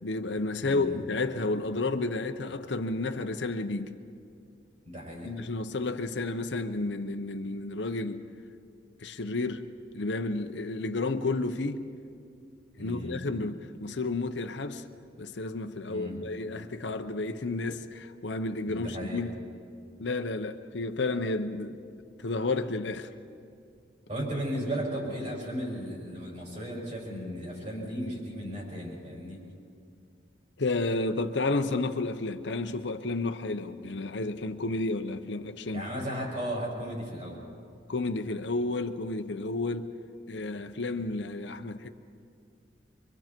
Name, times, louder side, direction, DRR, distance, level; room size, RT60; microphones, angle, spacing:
voice 1, 0.0-3.9 5.2-8.2 9.0-9.6 9.9-11.8 12.8-14.8 15.2-19.4 20.0-21.8 22.2-23.1 30.6-35.9 37.9-39.9 40.3-41.9, left 3 dB, 70° left, 0.8 m, -31 dB
voice 2, 0.6-1.0 4.8-5.3 12.8-13.2 15.9-16.2 18.7-19.2 24.1-29.4 35.7-37.4, equal, 40° right, 6.3 m, -35 dB
25.5 x 23.5 x 4.5 m
head